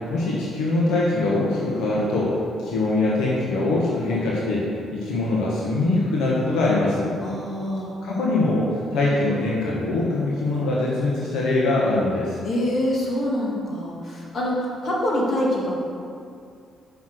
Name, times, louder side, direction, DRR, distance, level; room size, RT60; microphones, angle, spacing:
voice 1, 0.1-7.1 8.0-12.4, left 2 dB, 90° left, -5 dB, 1.3 m, -23 dB
voice 2, 7.2-8.0 12.4-15.8, left 1 dB, 50° left, -4 dB, 2.1 m, -25 dB
6.0 x 5.9 x 6.3 m, 2.4 s
cardioid pair, 90°, 0 cm